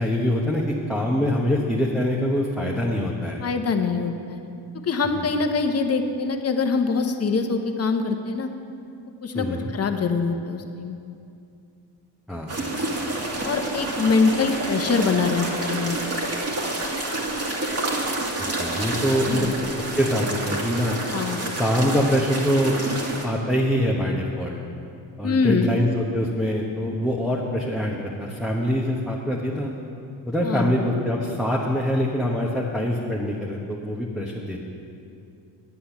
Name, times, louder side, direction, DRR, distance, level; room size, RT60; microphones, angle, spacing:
voice 1, 0.0-3.4 5.2-5.3 9.3-9.7 12.3-12.6 18.4-19.5 20.0-21.0 21.6-22.8 23.1-24.6 25.2-29.7 30.3-34.6, equal, ahead, -4 dB, 1.1 m, -24 dB
voice 2, 3.4-4.4 4.8-8.5 9.2-9.5 9.7-11.0 13.4-16.2 19.3-19.5 21.1-21.4 25.2-25.7 30.4-30.7, left 4 dB, 35° left, 6 dB, 1.0 m, -24 dB
sound 1, 12.5-23.2, right 2 dB, 35° right, 2.0 m, -28 dB
9.9 x 8.6 x 7.2 m, 2.6 s
cardioid pair, 95°, 43 cm